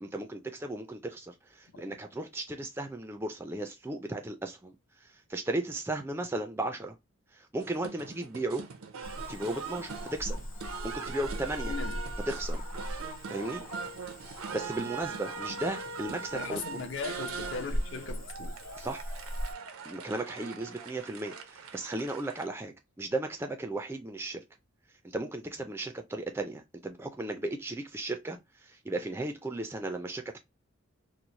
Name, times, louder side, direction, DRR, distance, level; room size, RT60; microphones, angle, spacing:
voice 1, 0.0-4.8 5.0-6.9 7.3-8.7 9.3-10.4 10.8-11.7 12.3-12.6 13.3-13.6 14.5-16.6 18.8-19.0 19.9-24.4 25.0-30.4, right 2 dB, 10° right, 0.3 m, -35 dB
sound 1, 7.6-22.5, right 5 dB, 90° right, 0.6 m, -41 dB
Cricket / Frog, 9.0-19.5, equal, 80° left, 1.1 m, -40 dB
voice 2, 11.7-12.0 16.3-18.5, left 5 dB, 60° left, 0.6 m, -38 dB
3.0 x 2.0 x 3.8 m
head